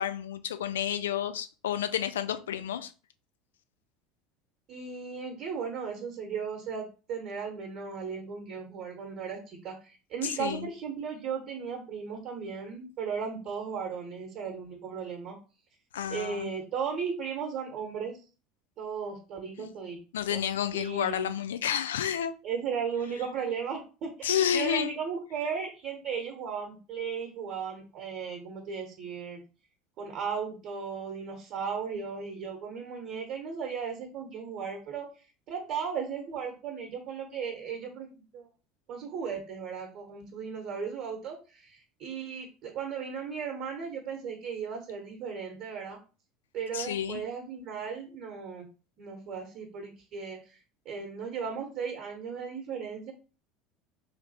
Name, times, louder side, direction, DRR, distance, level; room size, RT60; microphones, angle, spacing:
voice 1, 0.0-2.9 10.4-10.7 15.9-16.5 19.6-19.7 20.1-22.3 24.2-24.9 46.7-47.2, left 9 dB, 75° left, 11 dB, 0.3 m, -30 dB
voice 2, 4.7-15.4 16.1-18.2 18.8-20.0 20.3-20.4 20.7-21.3 22.4-29.4 30.0-35.1 35.5-38.5 38.9-46.0 46.5-48.7 49.0-50.6 50.8-53.1, right 6 dB, 50° right, 2 dB, 1.0 m, -36 dB
3.3 x 2.5 x 4.0 m, 0.34 s
figure-of-eight pair, 70°, 0 cm